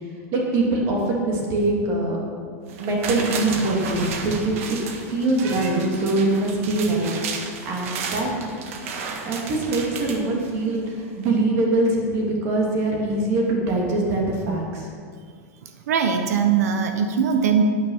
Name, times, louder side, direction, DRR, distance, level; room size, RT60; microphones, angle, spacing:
voice 1, 0.3-2.2 2.8-7.1 7.6-8.5 9.2-14.9, right 2 dB, 35° right, -1 dB, 2.8 m, -23 dB
sound 1, 2.7-10.8 11.2-11.3, right 5 dB, 60° right, 1.6 m, -33 dB
voice 2, 15.9-17.6, right 7 dB, 80° right, 6 dB, 1.1 m, -20 dB
12.5 x 9.5 x 5.7 m, 2.1 s
supercardioid pair, 165°, 9 cm